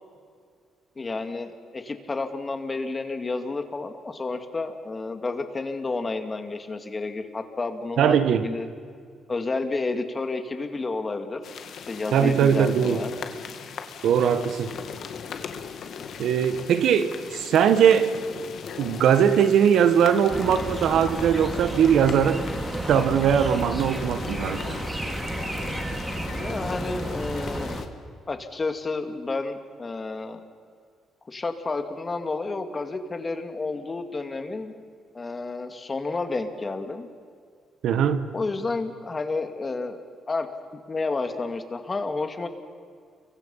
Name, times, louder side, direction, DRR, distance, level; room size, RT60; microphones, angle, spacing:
voice 1, 1.0-8.7 9.3-11.4 11.9-13.2 26.3-27.8 28.3-30.4 31.3-34.7 35.1-37.1 38.3-40.0 40.3-40.5 40.9-42.5, left 3 dB, 30° left, 7 dB, 2.4 m, -30 dB
voice 2, 8.0-8.5 12.1-13.0 14.0-14.7 16.2-18.2 18.8-22.4 22.9-24.8 37.8-38.3, right 8 dB, 75° right, 10 dB, 1.5 m, -20 dB
sound 1, 11.4-27.9, left 6 dB, 65° left, 2.1 m, -39 dB
sound 2, 20.3-27.8, right 1 dB, 15° right, 2.6 m, -32 dB
29.5 x 23.5 x 5.7 m, 2.2 s
cardioid pair, 90°, 0 cm